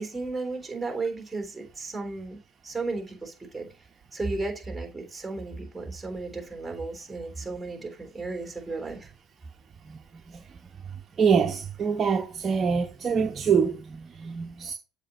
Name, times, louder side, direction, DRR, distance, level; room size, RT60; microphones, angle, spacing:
voice 1, 0.0-2.4 2.6-3.7 4.1-9.1, right 3 dB, 10° right, 3.7 m, -34 dB
voice 2, 11.2-14.7, right 6 dB, 35° right, 1.1 m, -25 dB
7.5 x 5.2 x 4.2 m
hypercardioid pair, 70°, 0 cm